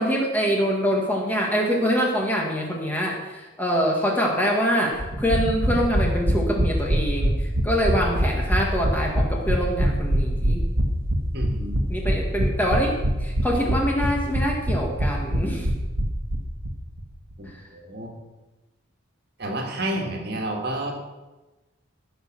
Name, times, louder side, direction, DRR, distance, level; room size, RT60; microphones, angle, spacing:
voice 1, 0.0-10.6 11.9-15.7 17.5-17.7 20.2-20.3, equal, 10° left, -1 dB, 1.9 m, -25 dB
sound 1, 5.0-16.7 17.0-17.1 17.3-17.4, equal, 85° right, 1.8 m, -23 dB
voice 2, 11.3-11.8 17.4-18.1 19.4-21.0, right 1 dB, 50° right, 1 dB, 2.1 m, -30 dB
16.0 x 6.5 x 6.2 m, 1.1 s
head